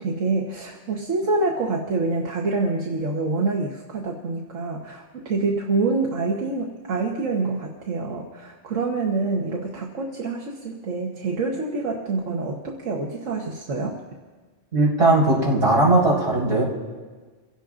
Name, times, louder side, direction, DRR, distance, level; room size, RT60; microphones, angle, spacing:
voice 1, 0.0-14.0, right 3 dB, 85° right, -1 dB, 1.7 m, -26 dB
voice 2, 14.7-16.6, right 2 dB, 65° right, -6 dB, 5.7 m, -18 dB
29.5 x 17.0 x 2.6 m, 1.4 s
omnidirectional pair, 1.3 m